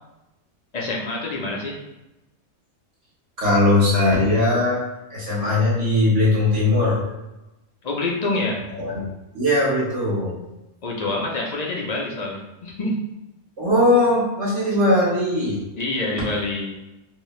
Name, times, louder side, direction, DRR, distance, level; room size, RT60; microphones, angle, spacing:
voice 1, 0.7-1.8 7.8-8.6 10.8-13.1 15.8-16.8, left 2 dB, 45° left, -2 dB, 0.6 m, -26 dB
voice 2, 3.4-4.8 5.1-7.0 8.8-8.9 9.3-10.4 13.6-15.6, left 2 dB, 65° right, -7 dB, 1.7 m, -19 dB
3.2 x 2.7 x 3.1 m, 0.97 s
omnidirectional pair, 1.3 m